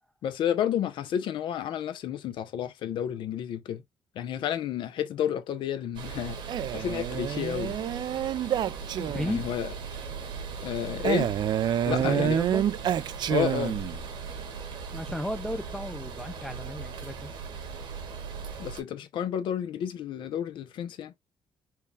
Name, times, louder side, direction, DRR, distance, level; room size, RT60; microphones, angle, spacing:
voice 1, 0.2-3.8 4.1-6.4 6.7-7.8 9.3-9.7 10.6-11.3 11.8-12.4 13.3-13.8 18.6-21.1, left 9 dB, 75° left, 0.7 m, -31 dB
sound 1, 5.9-18.8, right 5 dB, 80° right, 1.3 m, -39 dB
Male speech man speaking, 6.5-9.5 11.0-14.0, right 10 dB, 60° right, 0.4 m, -28 dB
voice 2, 9.0-9.5 11.9-12.6 14.9-17.3, left 1 dB, 5° left, 0.4 m, -34 dB
4.5 x 2.3 x 3.3 m
cardioid pair, 100°, 8 cm